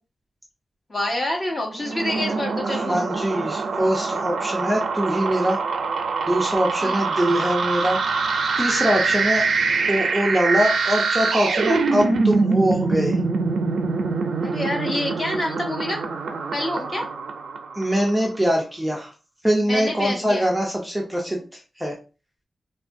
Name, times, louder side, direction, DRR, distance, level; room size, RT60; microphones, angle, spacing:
voice 1, 0.9-3.2 6.8-7.1 9.1-9.3 14.4-16.0 16.5-17.1 19.7-20.5 21.3-21.4, left 1 dB, 30° left, 0 dB, 0.8 m, -27 dB
sound 1, 1.7-18.1, right 4 dB, 90° right, 0.4 m, -24 dB
voice 2, 2.6-5.6 6.3-9.5 9.9-13.2 17.8-19.1 19.4-21.4 21.8-21.9, equal, 5° right, -1 dB, 0.4 m, -23 dB
3.3 x 2.2 x 2.5 m, 0.33 s
wide cardioid pair, 175°, 0 cm